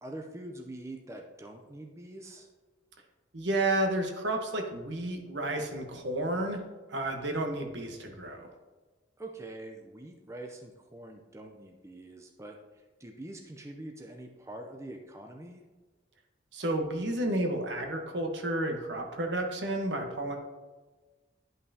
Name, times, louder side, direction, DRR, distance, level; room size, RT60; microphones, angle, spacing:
voice 1, 0.0-2.5 9.2-15.6, right 1 dB, 15° right, 3 dB, 0.5 m, -44 dB
voice 2, 3.3-6.6 6.9-8.5 16.5-20.4, right 1 dB, 70° right, 3 dB, 1.1 m, -31 dB
11.0 x 5.5 x 2.8 m, 1.3 s
head